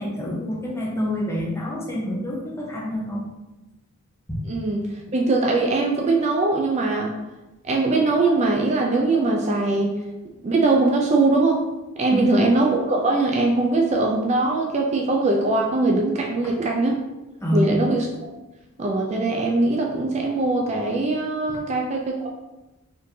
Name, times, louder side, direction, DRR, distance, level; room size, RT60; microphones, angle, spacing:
voice 1, 0.0-3.3 4.3-4.4 12.1-12.4 16.4-16.5 17.4-17.7 21.5-21.6, equal, 15° left, -3 dB, 0.8 m, -27 dB
voice 2, 4.5-4.8 5.1-7.2 7.6-10.0 10.4-11.6 12.0-17.0 17.5-18.3 18.8-22.3, right 2 dB, 35° right, 0 dB, 0.4 m, -21 dB
4.2 x 3.2 x 2.7 m, 1.0 s
head